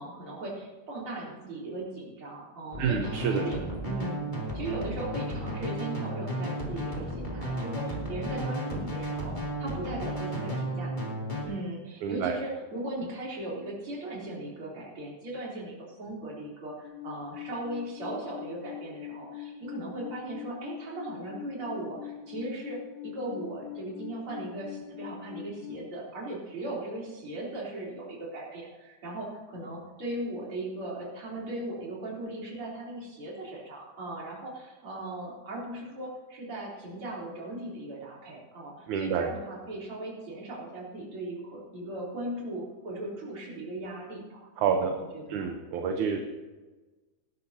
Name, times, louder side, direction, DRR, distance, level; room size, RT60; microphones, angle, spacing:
voice 1, 0.0-3.6 3.8-11.2 11.4-45.5, right 2 dB, 40° right, -5 dB, 4.3 m, -38 dB
sound 1, 2.7-11.4, right 1 dB, 15° left, 2.2 m, -33 dB
voice 2, 2.8-3.4 12.0-12.4 38.9-39.3 44.6-44.9 45.3-46.2, right 6 dB, 70° right, 3 dB, 2.2 m, -28 dB
Alarm, 16.8-25.8, left 12 dB, 75° left, 2.4 m, -43 dB
18.5 x 12.0 x 2.8 m, 1.2 s
omnidirectional pair, 3.8 m